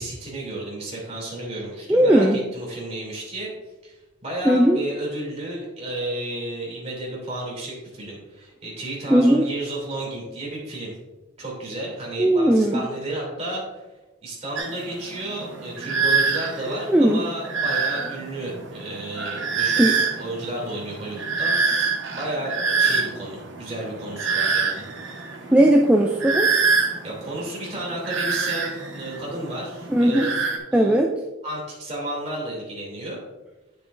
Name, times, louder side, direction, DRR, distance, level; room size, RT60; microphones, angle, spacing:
voice 1, 0.0-3.5 3.8-10.9 11.4-13.8 14.2-19.8 20.2-21.6 22.2-24.9 27.0-30.3 30.7-31.1 31.4-33.2, right 1 dB, 35° right, -3 dB, 2.7 m, -32 dB
voice 2, 1.9-2.4 4.4-4.8 9.1-9.5 12.2-12.9 16.9-17.2 19.8-20.0 25.5-26.5 29.9-30.3 30.7-31.1, right 1 dB, 5° right, 0 dB, 0.3 m, -17 dB
sound 1, 14.6-30.6, right 5 dB, 70° right, 1.0 m, -26 dB
9.2 x 6.8 x 2.5 m, 1.1 s
head